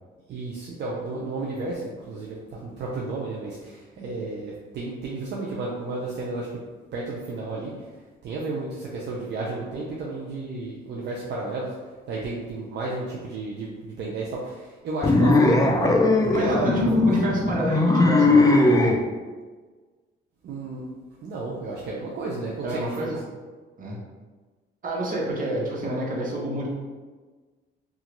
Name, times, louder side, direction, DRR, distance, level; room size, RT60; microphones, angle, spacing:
voice 1, 0.3-6.6 6.9-7.9 8.2-11.7 12.1-17.1 20.4-20.8 21.2-23.1, right 2 dB, 60° right, -4 dB, 0.5 m, -32 dB
sound 1, 15.0-19.0, left 2 dB, 20° left, 0.4 m, -19 dB
voice 2, 16.3-18.9 22.6-23.2 23.8-24.0 24.8-26.7, right 1 dB, 45° right, -3 dB, 0.9 m, -29 dB
2.9 x 2.4 x 3.0 m, 1.4 s
cardioid pair, 90°, 20 cm